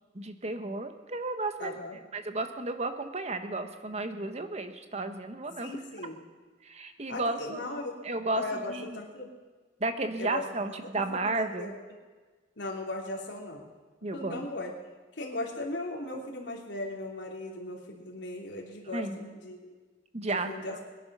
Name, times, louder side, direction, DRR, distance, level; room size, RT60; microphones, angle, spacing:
voice 1, 0.1-1.8 2.1-5.8 6.6-7.7 8.0-9.0 9.8-11.7 14.0-14.5 18.9-19.2 20.1-20.8, right 2 dB, 35° right, 8 dB, 1.1 m, -33 dB
voice 2, 1.6-2.0 5.6-6.2 7.1-8.0 8.3-9.3 10.2-10.4 10.7-11.8 12.6-13.7 14.1-14.7 15.2-19.7 20.2-20.8, left 2 dB, 75° left, -1 dB, 3.0 m, -38 dB
21.5 x 11.0 x 6.1 m, 1.3 s
head